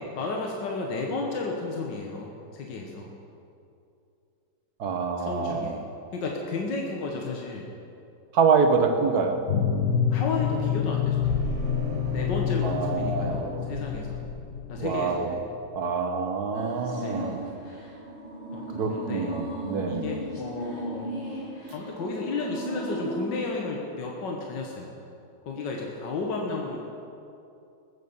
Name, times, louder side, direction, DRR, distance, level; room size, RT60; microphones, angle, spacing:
voice 1, 0.1-3.1 5.2-5.8 6.1-7.7 10.1-11.3 12.1-14.2 14.7-15.4 17.0-17.5 18.5-19.3 19.9-21.1 21.7-25.0 25.5-26.8, left 3 dB, 75° left, 0 dB, 1.9 m, -33 dB
voice 2, 4.8-5.8 8.3-9.5 12.6-13.7 14.8-15.3 15.7-17.4 18.7-20.2, right 5 dB, 60° right, 5 dB, 1.6 m, -26 dB
sound 1, 9.5-15.4, left 8 dB, 55° left, 1.2 m, -28 dB
sound 2, 11.2-14.6, right 2 dB, 85° right, 2.4 m, -36 dB
sound 3, 16.5-23.4, equal, 35° left, 2.4 m, -36 dB
19.0 x 8.2 x 7.2 m, 2.7 s
omnidirectional pair, 2.0 m